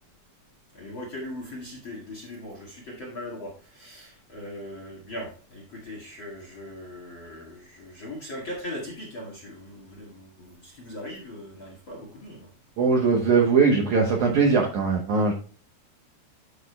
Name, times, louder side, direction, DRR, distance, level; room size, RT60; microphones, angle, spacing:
voice 1, 0.7-12.5, left 1 dB, 45° left, -3 dB, 1.7 m, -39 dB
voice 2, 12.8-15.3, right 4 dB, 75° right, 1 dB, 1.8 m, -20 dB
11.5 x 6.3 x 2.3 m, 0.40 s
omnidirectional pair, 4.9 m